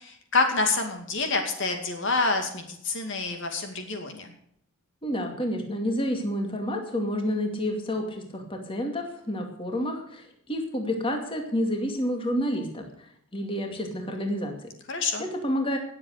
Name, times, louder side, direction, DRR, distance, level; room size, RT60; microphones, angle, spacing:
voice 1, 0.0-4.3 14.9-15.2, left 3 dB, 60° left, 4 dB, 2.4 m, -27 dB
voice 2, 5.0-14.7 15.2-15.8, equal, 25° left, 3 dB, 2.4 m, -29 dB
19.0 x 8.0 x 6.6 m, 0.69 s
head